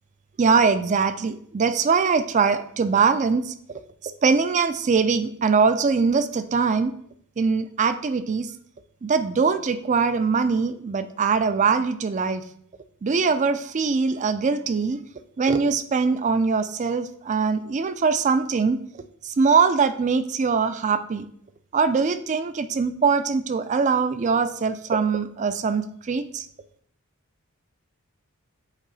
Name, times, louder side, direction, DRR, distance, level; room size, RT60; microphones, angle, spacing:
voice 1, 0.4-3.5 4.2-6.9 7.4-8.5 9.0-12.4 13.0-15.0 15.4-18.8 19.2-21.3 21.7-26.4, right 5 dB, 35° right, 11 dB, 0.3 m, -22 dB
8.2 x 3.1 x 3.9 m, 0.65 s
head